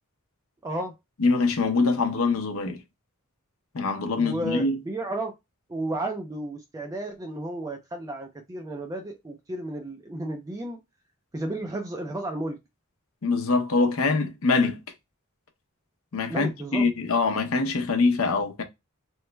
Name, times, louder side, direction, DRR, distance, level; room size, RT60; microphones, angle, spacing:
voice 1, 0.6-0.9 4.2-5.3 5.7-10.8 11.3-12.6 16.3-16.9, right 1 dB, 15° right, 0.4 m, -33 dB
voice 2, 1.2-2.8 3.7-4.8 13.2-14.8 16.1-18.6, left 3 dB, 70° left, 0.6 m, -24 dB
3.0 x 2.1 x 3.2 m
head